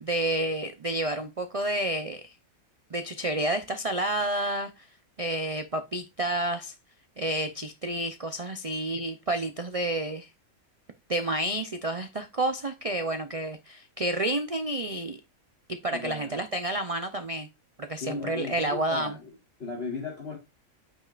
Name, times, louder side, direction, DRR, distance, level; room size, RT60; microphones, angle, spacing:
voice 1, 0.0-2.4 2.9-4.9 5.2-6.7 7.2-10.3 11.1-15.2 15.7-17.5 17.8-19.2, right 1 dB, 60° right, 0.3 m, -30 dB
voice 2, 15.9-16.4 18.0-20.4, left 4 dB, 45° left, 1.7 m, -37 dB
8.6 x 5.3 x 2.5 m
omnidirectional pair, 1.5 m